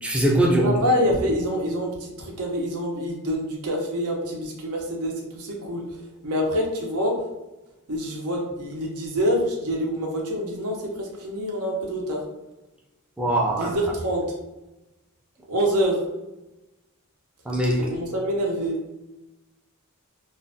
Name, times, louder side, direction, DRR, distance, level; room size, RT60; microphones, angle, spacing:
voice 1, 0.0-0.8 13.2-13.8 17.5-17.9, right 1 dB, 5° right, -2 dB, 0.4 m, -21 dB
voice 2, 0.6-5.8 6.2-7.1 7.9-12.2 13.5-14.3 15.5-16.0 17.9-18.8, equal, 90° right, 0 dB, 0.6 m, -26 dB
2.4 x 2.1 x 2.6 m, 1.0 s
head